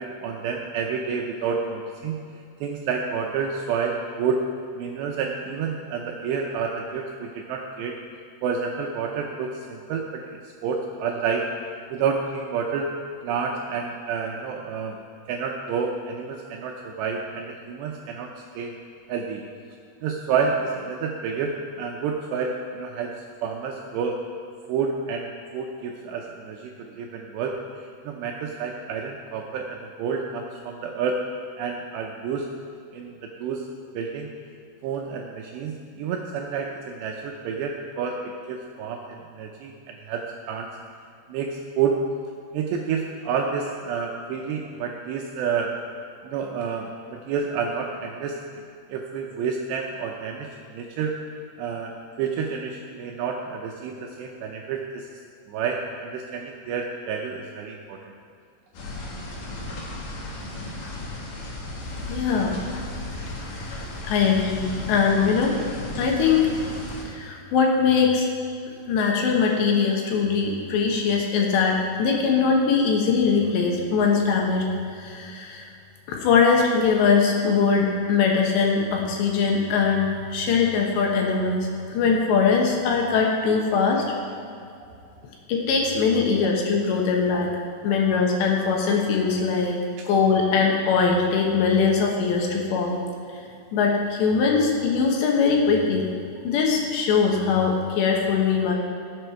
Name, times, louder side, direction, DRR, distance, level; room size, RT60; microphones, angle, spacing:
voice 1, 0.0-2.2 2.6-4.4 4.8-8.0 8.4-11.5 11.9-12.9 13.2-15.0 15.3-18.7 19.1-19.4 20.0-23.2 23.4-24.2 24.7-31.2 31.6-32.5 32.9-33.6 33.9-34.3 34.8-40.7 41.3-42.0 42.5-45.7 46.2-48.4 48.9-51.1 51.6-55.1 55.5-58.1, right 6 dB, 80° right, 1 dB, 2.5 m, -29 dB
sound 1, 58.7-67.0, left 1 dB, 55° left, 2.8 m, -35 dB
voice 2, 62.0-62.8 64.0-65.6 66.0-66.5 67.1-68.3 68.9-74.6 74.9-75.7 76.1-84.0 85.5-87.6 87.8-89.8 90.1-93.0 93.7-96.1 96.4-98.7, left 5 dB, 70° left, 0 dB, 3.1 m, -21 dB
17.0 x 7.8 x 4.5 m, 2.4 s
omnidirectional pair, 5.6 m